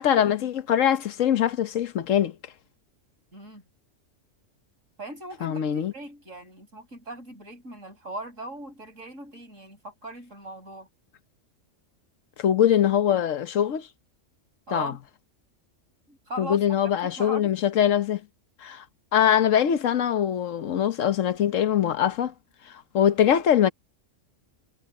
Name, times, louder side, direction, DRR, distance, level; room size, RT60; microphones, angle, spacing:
voice 1, 0.0-2.3 5.4-5.9 12.4-13.9 14.7-14.9 16.4-18.2 18.6-18.8 19.1-22.3 22.9-23.7, left 9 dB, 90° left, 1.3 m, -22 dB
voice 2, 3.3-3.6 5.0-10.9 14.7-15.0 16.1-17.5, right 1 dB, 90° right, 7.3 m, -39 dB
omnidirectional pair, 1.3 m